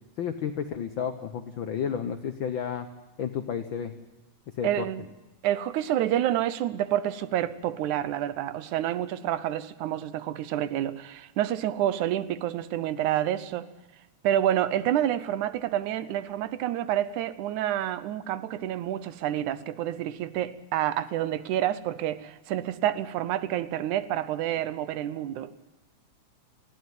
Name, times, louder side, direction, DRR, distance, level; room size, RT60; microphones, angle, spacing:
voice 1, 0.2-2.9 3.2-3.9 4.5-4.9, left 8 dB, 90° left, 1.0 m, -31 dB
voice 2, 4.6-5.1 5.4-13.7 14.2-25.5, right 12 dB, 80° right, 2.2 m, -28 dB
19.0 x 15.0 x 9.4 m
omnidirectional pair, 3.5 m